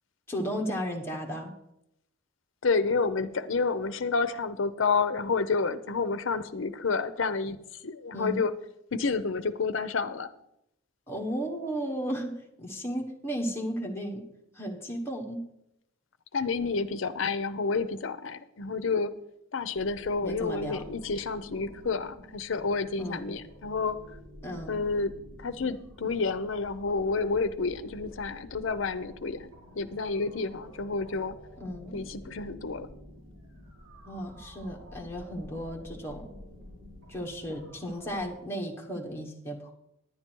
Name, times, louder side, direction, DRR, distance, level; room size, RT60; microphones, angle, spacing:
voice 1, 0.3-1.5 8.1-8.4 11.1-12.3 12.6-14.2 14.5-15.4 20.2-20.8 23.0-23.2 24.4-24.7 31.6-32.0 34.1-36.2 37.1-39.7, equal, 10° left, -1 dB, 1.3 m, -34 dB
voice 2, 2.6-7.6 7.8-8.5 8.9-10.3 16.3-19.1 19.5-24.0 24.7-25.1 25.4-29.5 29.8-31.4 31.9-32.9, left 4 dB, 65° left, 12 dB, 0.6 m, -29 dB
sound 1, 19.7-38.3, left 1 dB, 65° right, 3.6 m, -49 dB
10.0 x 9.5 x 4.5 m, 0.81 s
head